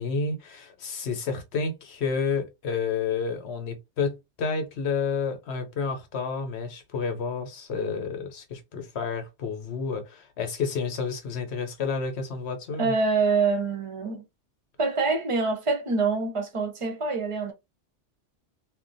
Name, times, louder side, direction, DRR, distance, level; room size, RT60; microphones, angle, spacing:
voice 1, 0.0-13.0, left 5 dB, 65° left, 1.0 m, -30 dB
voice 2, 12.8-14.2 14.8-17.5, right 4 dB, 35° right, 0.6 m, -25 dB
2.4 x 2.2 x 3.8 m
omnidirectional pair, 1.3 m